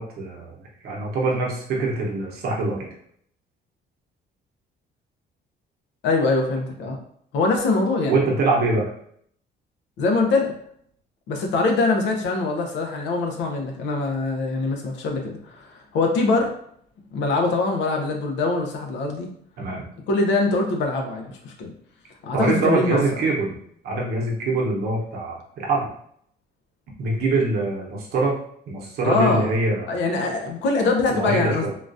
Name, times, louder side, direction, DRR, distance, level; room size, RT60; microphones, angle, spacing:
voice 1, 0.0-2.9 8.1-8.8 19.6-19.8 22.3-23.6 23.8-25.9 27.0-28.4 28.7-29.9 31.1-31.7, right 3 dB, 60° right, -2 dB, 0.9 m, -24 dB
voice 2, 6.0-7.0 7.3-8.2 10.0-10.5 11.3-16.5 17.1-19.3 20.1-21.7 22.2-23.0 29.0-29.5 29.9-31.7, left 3 dB, 85° left, 2 dB, 0.8 m, -23 dB
3.7 x 2.4 x 2.6 m, 0.66 s
cardioid pair, 175°, 18 cm